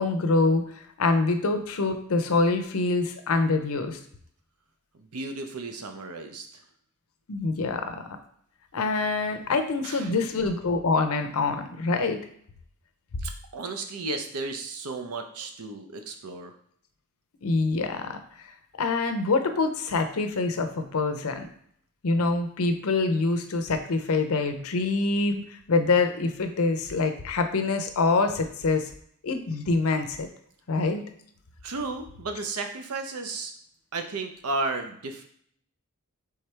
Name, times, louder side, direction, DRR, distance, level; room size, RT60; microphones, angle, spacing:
voice 1, 0.0-4.0 7.3-8.0 8.7-12.2 17.4-18.2 18.8-21.5 22.0-28.8 29.2-30.3 30.7-31.0, left 3 dB, 70° left, 7 dB, 0.6 m, -25 dB
voice 2, 4.9-6.6 9.8-10.1 13.2-16.5 31.6-33.5 33.9-35.2, right 3 dB, 80° right, 6 dB, 0.7 m, -34 dB
4.5 x 3.6 x 3.3 m, 0.64 s
head